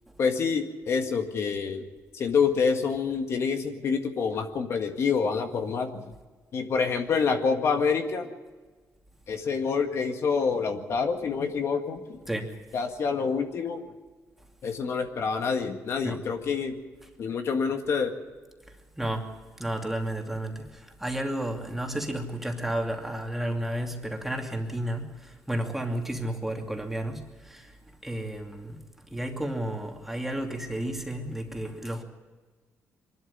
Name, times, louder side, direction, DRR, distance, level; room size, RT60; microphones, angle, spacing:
voice 1, 0.2-1.8 2.1-6.0 6.5-8.3 9.3-12.2 12.7-13.8 14.6-16.8 17.2-18.1, left 5 dB, 55° left, 1.9 m, -27 dB
voice 2, 12.3-12.6 16.0-16.2 18.7-28.8 29.1-32.0, right 1 dB, 5° right, 2.6 m, -32 dB
23.5 x 12.5 x 9.9 m
cardioid pair, 110°, 6 cm